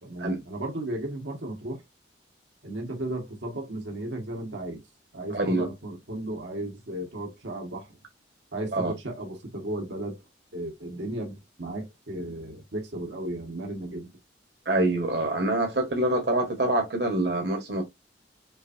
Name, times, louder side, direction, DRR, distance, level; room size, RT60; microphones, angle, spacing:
voice 1, 0.0-1.8 2.6-4.8 5.1-8.0 8.5-10.2 10.5-14.1, right 1 dB, 80° right, 1.5 m, -35 dB
voice 2, 5.3-5.7 8.7-8.9 14.6-17.8, right 2 dB, 65° right, 1.5 m, -25 dB
6.3 x 2.7 x 2.6 m
head